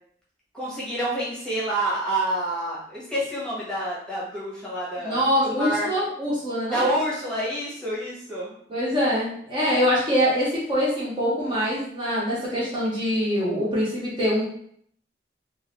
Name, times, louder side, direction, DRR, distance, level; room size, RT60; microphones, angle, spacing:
voice 1, 0.5-5.9 6.7-8.5, right 1 dB, 5° left, -7 dB, 1.1 m, -28 dB
voice 2, 5.0-6.9 8.7-14.4, equal, 25° right, -7 dB, 0.8 m, -24 dB
3.7 x 2.5 x 2.9 m, 0.65 s
head